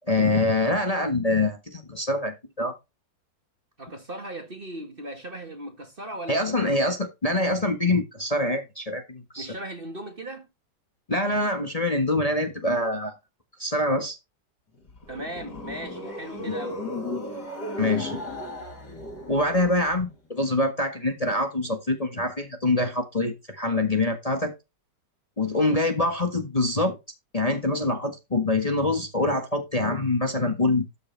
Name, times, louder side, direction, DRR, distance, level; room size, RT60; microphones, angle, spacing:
voice 1, 0.1-2.7 6.3-9.5 11.1-13.1 13.6-14.2 17.8-18.2 19.3-24.5 25.4-27.0 27.3-30.9, left 2 dB, 20° left, 1.5 m, -25 dB
voice 2, 3.8-7.0 9.4-10.5 15.1-16.8, right 1 dB, 30° right, 1.8 m, -37 dB
sound 1, 14.7-20.1, left 1 dB, 60° left, 5.0 m, -35 dB
13.0 x 6.6 x 3.4 m
omnidirectional pair, 1.9 m